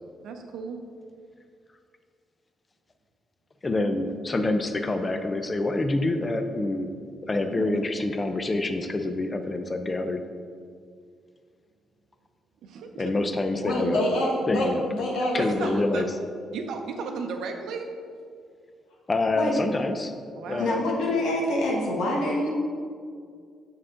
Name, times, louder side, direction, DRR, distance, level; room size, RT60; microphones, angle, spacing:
voice 1, 0.2-0.9 7.7-7.8 12.6-13.0 15.4-16.1 16.5-17.9 20.4-20.8 21.1-21.3, right 4 dB, 80° right, 4 dB, 0.7 m, -34 dB
voice 2, 3.6-6.9 7.2-10.2 13.0-14.0 14.5-14.8 15.3-16.1 19.1-20.1 20.5-20.8, left 2 dB, 25° left, 7 dB, 0.5 m, -26 dB
voice 3, 13.6-15.4 15.6-15.7 19.4-19.6 20.6-22.5, left 1 dB, 85° left, -2 dB, 1.4 m, -26 dB
7.3 x 4.6 x 3.7 m, 2.2 s
cardioid pair, 90°, 0 cm